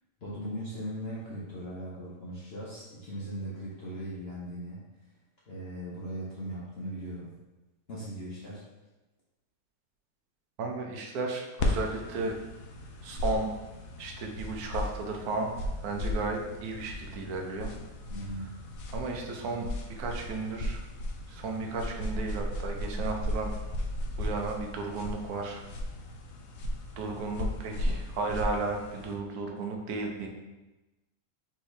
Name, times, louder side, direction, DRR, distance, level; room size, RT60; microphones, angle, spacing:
voice 1, 0.2-4.8 5.5-7.3 7.9-8.6 18.1-18.5, right 1 dB, 50° left, -7 dB, 0.9 m, -38 dB
voice 2, 10.6-12.4 13.0-13.5 14.0-15.5 15.8-17.7 18.9-20.8 21.3-23.5 24.2-25.6 27.0-30.3, right 3 dB, 70° right, 2 dB, 1.2 m, -34 dB
sound 1, 11.6-29.2, left 1 dB, 90° left, 1.2 m, -35 dB
4.3 x 3.5 x 3.2 m, 1.1 s
omnidirectional pair, 1.7 m